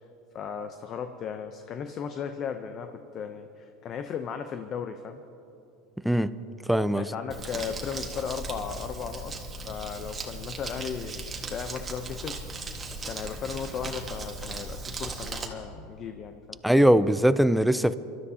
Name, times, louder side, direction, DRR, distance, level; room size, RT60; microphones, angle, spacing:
voice 1, 0.3-5.2 6.9-12.4 13.0-16.6, left 7 dB, 35° left, 7 dB, 0.6 m, -36 dB
voice 2, 6.7-7.1 16.6-18.0, right 1 dB, ahead, 14 dB, 0.4 m, -21 dB
Crumpling crinkling, 7.3-15.5, right 3 dB, 20° right, 1.5 m, -37 dB
28.0 x 13.0 x 2.8 m, 2.9 s
supercardioid pair, 130°, 0 cm